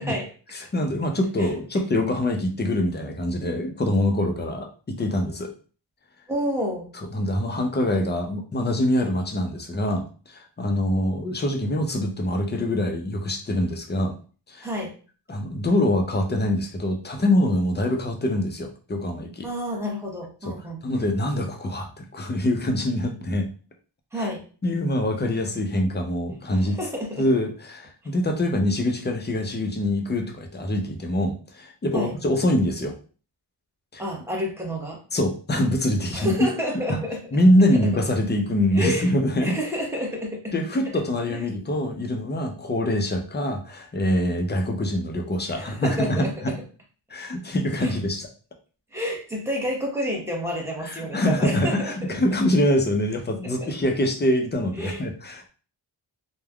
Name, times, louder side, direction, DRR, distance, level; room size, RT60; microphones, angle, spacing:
voice 1, 0.0-0.3 1.4-1.5 6.3-6.9 14.6-15.0 19.4-20.8 24.1-24.4 26.6-27.3 31.9-32.1 34.0-35.0 36.1-37.2 38.7-39.1 39.4-40.5 41.3-41.4 45.5-46.6 47.8-47.9 48.9-52.2 53.6-53.7 54.8-55.0, equal, 5° right, -2 dB, 0.9 m, -30 dB
voice 2, 0.5-5.5 7.1-14.1 14.5-14.7 15.3-19.5 20.5-20.6 20.8-23.5 24.2-24.3 24.6-26.8 27.2-32.9 33.9-34.0 35.1-36.4 36.9-37.0 37.3-39.6 40.5-46.5 47.1-48.3 50.8-55.5, left 1 dB, 20° left, 4 dB, 0.5 m, -24 dB
3.3 x 2.2 x 2.3 m, 0.38 s
cardioid pair, 75°, 47 cm